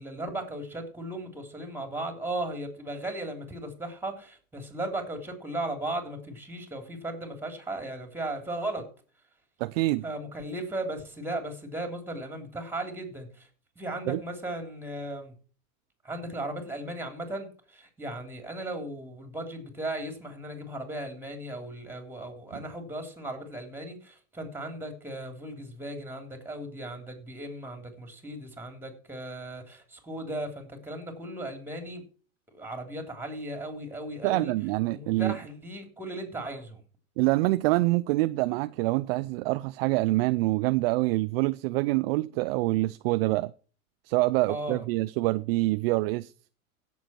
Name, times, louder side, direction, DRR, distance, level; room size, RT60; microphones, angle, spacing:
voice 1, 0.0-8.8 10.0-13.5 13.7-15.3 16.0-32.0 32.5-34.5 34.9-36.8 44.5-44.8, right 1 dB, 5° right, 3.4 m, -36 dB
voice 2, 9.6-10.0 14.1-14.2 22.5-22.6 34.2-35.4 37.2-43.5 44.1-46.3, right 20 dB, 45° right, 0.5 m, -26 dB
16.5 x 7.2 x 4.5 m
hypercardioid pair, 120°, 43 cm